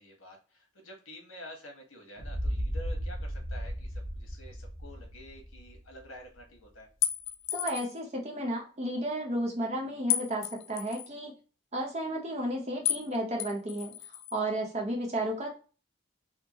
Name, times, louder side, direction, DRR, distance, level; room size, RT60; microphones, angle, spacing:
voice 1, 0.0-6.9, equal, 85° left, 2 dB, 1.2 m, -49 dB
sound 1, 2.2-6.0, equal, 30° left, 1.0 m, -35 dB
sound 2, 7.0-8.0 10.1-11.1 12.8-13.1 13.4-14.3, left 12 dB, 60° left, 0.3 m, -32 dB
voice 2, 7.5-11.3 11.7-15.5, right 1 dB, 30° right, 0 dB, 0.8 m, -33 dB
3.6 x 2.1 x 2.9 m, 0.36 s
head